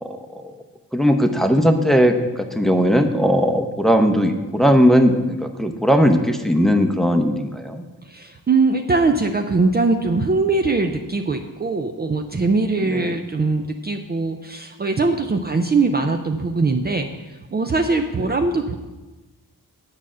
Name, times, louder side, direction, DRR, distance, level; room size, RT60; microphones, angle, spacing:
voice 1, 0.0-0.5 0.9-7.8 12.9-13.2, equal, ahead, 6 dB, 0.8 m, -18 dB
voice 2, 8.0-18.8, right 3 dB, 30° right, 5 dB, 0.6 m, -21 dB
8.9 x 5.7 x 7.3 m, 1.2 s
wide cardioid pair, 105°, 34 cm